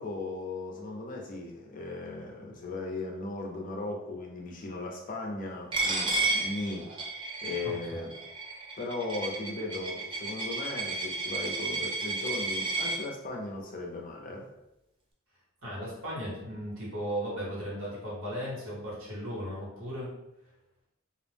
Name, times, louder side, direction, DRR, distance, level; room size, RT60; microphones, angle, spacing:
voice 1, 0.0-6.9 7.4-8.1 8.8-14.5, left 2 dB, 40° left, 0 dB, 0.5 m, -37 dB
Coin (dropping), 5.7-13.0, right 3 dB, 25° right, 0.4 m, -32 dB
voice 2, 7.6-8.0 15.6-20.1, equal, 80° right, -5 dB, 1.2 m, -36 dB
2.4 x 2.0 x 3.2 m, 0.88 s
head